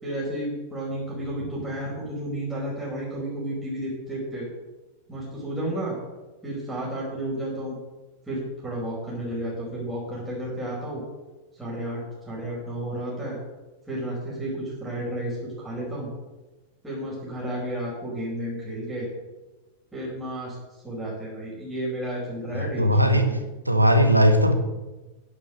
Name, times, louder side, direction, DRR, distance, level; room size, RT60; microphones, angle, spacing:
voice 1, 0.0-4.5 5.1-6.0 6.4-7.8 8.3-11.0 11.6-13.4 13.9-16.1 16.8-19.1 19.9-23.3, right 1 dB, 5° right, -6 dB, 5.0 m, -32 dB
voice 2, 22.5-23.3 23.7-24.5, equal, 85° right, 7 dB, 1.2 m, -18 dB
11.0 x 7.8 x 6.5 m, 1.1 s
figure-of-eight pair, 90°, 0 cm